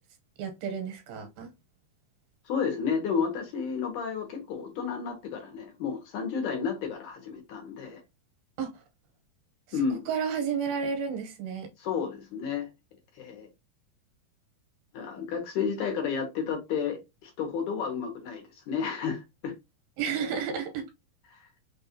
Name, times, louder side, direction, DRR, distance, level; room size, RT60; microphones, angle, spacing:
voice 1, 0.4-1.5 8.6-8.7 10.1-11.7 20.0-20.9, right 6 dB, 85° right, 2.7 m, -31 dB
voice 2, 2.5-8.0 9.7-10.1 11.8-12.7 13.2-13.5 14.9-19.6 21.3-21.4, left 6 dB, 70° left, 2.0 m, -32 dB
5.5 x 2.3 x 2.7 m
omnidirectional pair, 4.0 m